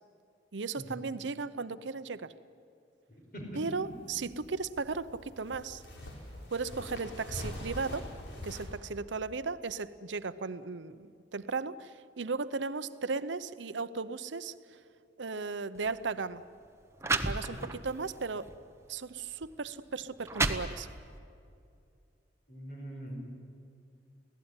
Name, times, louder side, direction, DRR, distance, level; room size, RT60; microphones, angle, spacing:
voice 1, 0.5-2.3 3.6-5.8 6.5-8.1 8.4-14.8 15.2-16.4 17.1-18.5 18.9-20.9, right 4 dB, 80° right, 14 dB, 0.7 m, -36 dB
sound 1, 3.6-8.7, left 1 dB, 75° left, 4.3 m, -44 dB
sound 2, 15.8-16.0 16.7-16.8 17.0-17.9 18.5-18.7 19.4-19.5 20.0-21.2, right 3 dB, 15° right, 0.9 m, -32 dB
voice 2, 22.5-23.2, equal, 50° left, 1 dB, 5.6 m, -43 dB
24.5 x 17.0 x 9.7 m, 2.5 s
head